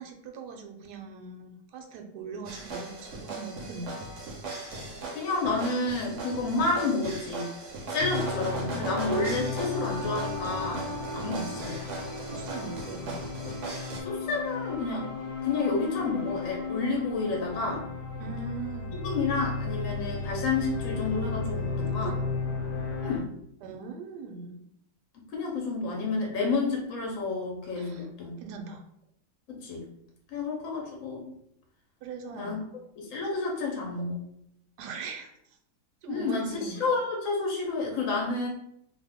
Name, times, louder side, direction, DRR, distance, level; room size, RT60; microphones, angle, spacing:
voice 1, 0.0-4.0 11.2-11.5 12.3-13.2 18.2-19.0 21.9-22.2 23.6-24.6 27.8-28.1 28.4-28.8 32.0-32.6 34.8-35.3 36.0-36.9, right 4 dB, 80° right, 4 dB, 1.1 m, -40 dB
sound 1, 2.4-14.0, right 3 dB, 60° right, 0.8 m, -38 dB
voice 2, 5.1-7.5 7.9-10.8 11.1-11.8 14.0-15.1 15.4-17.8 18.9-22.2 23.0-23.3 25.3-28.3 29.5-29.9 30.3-31.3 32.3-32.6 33.0-34.2 36.1-38.5, left 3 dB, 60° left, -1 dB, 1.0 m, -30 dB
sound 2, 8.0-23.2, left 4 dB, 90° left, 1.3 m, -34 dB
2.7 x 2.4 x 3.5 m, 0.72 s
omnidirectional pair, 1.8 m